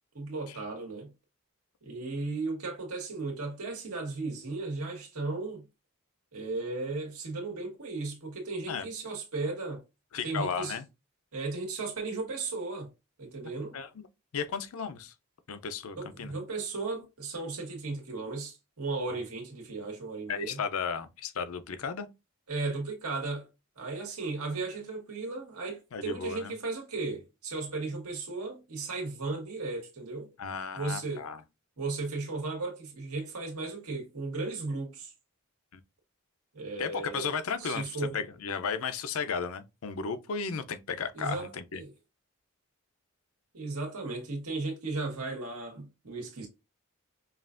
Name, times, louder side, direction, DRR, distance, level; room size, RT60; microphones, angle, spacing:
voice 1, 0.1-1.1 1.8-5.6 6.3-9.8 10.2-10.8 11.3-12.9 13.2-13.8 15.9-20.6 22.5-23.5 23.8-30.3 30.7-31.3 31.8-35.1 36.5-37.3 37.6-38.2 41.1-41.9 43.5-46.5, right 3 dB, 90° right, 1.6 m, -35 dB
voice 2, 10.1-10.8 13.7-13.9 14.3-15.1 15.5-16.3 20.3-22.1 25.9-26.5 30.4-31.4 35.7-35.8 36.8-41.8, left 5 dB, 75° left, 0.5 m, -34 dB
5.5 x 2.4 x 2.5 m
head